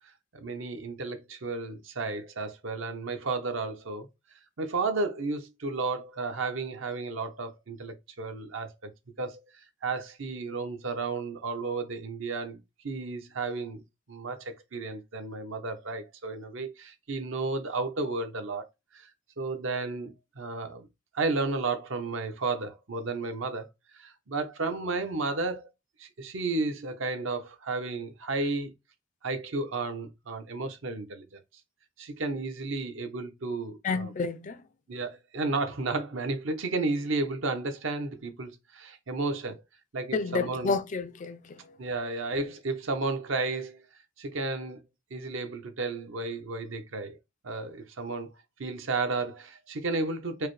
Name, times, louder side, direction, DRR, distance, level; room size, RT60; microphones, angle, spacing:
voice 1, 0.3-4.1 4.6-8.9 9.2-9.4 9.8-13.8 14.1-18.7 18.9-19.1 19.4-20.9 21.1-23.7 24.0-25.7 26.0-28.7 29.2-31.4 32.0-34.1 34.9-39.6 39.9-40.7 41.8-43.8 44.2-44.8 45.1-47.2 47.4-48.3 48.6-50.5, right 3 dB, 65° right, 0.8 m, -33 dB
voice 2, 33.8-34.6 40.1-41.8, left 4 dB, 35° left, 0.3 m, -30 dB
4.7 x 2.1 x 3.1 m
head